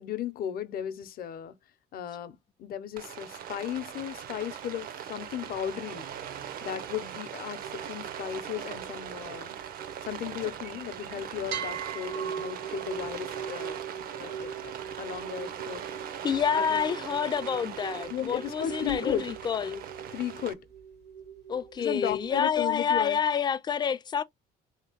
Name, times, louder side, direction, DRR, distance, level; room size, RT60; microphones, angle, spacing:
voice 1, 0.0-1.5 1.9-6.1 6.6-9.5 10.0-13.8 14.2-15.8 16.5-16.8 18.1-19.4 20.1-20.7 21.8-23.2, left 10 dB, 60° left, 0.7 m, -35 dB
Rain, 3.0-20.5, right 9 dB, 60° right, 0.6 m, -40 dB
sound 1, 7.6-11.0 11.5-22.6, right 8 dB, 85° right, 1.1 m, -41 dB
voice 2, 16.2-19.8 21.5-24.2, left 7 dB, 25° left, 0.3 m, -28 dB
3.3 x 2.8 x 2.9 m
cardioid pair, 110°, 17 cm